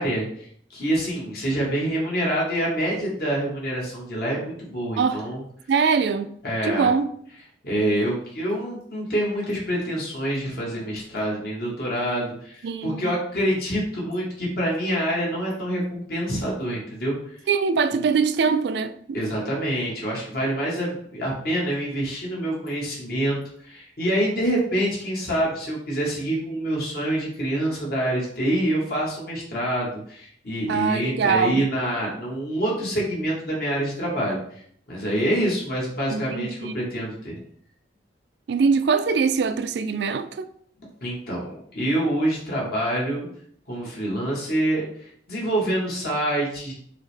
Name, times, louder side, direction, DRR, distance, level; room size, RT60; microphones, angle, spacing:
voice 1, 0.0-5.4 6.4-6.9 7.6-17.4 17.9-18.0 19.1-34.6 34.9-37.3 41.0-43.3 43.7-46.7, right 1 dB, 55° left, 1.2 m, -26 dB
voice 2, 5.7-6.3 6.6-7.1 12.6-13.1 17.5-19.2 30.7-31.7 36.1-36.7 38.5-40.5, right 5 dB, 65° right, 0.3 m, -23 dB
5.5 x 2.1 x 3.3 m
head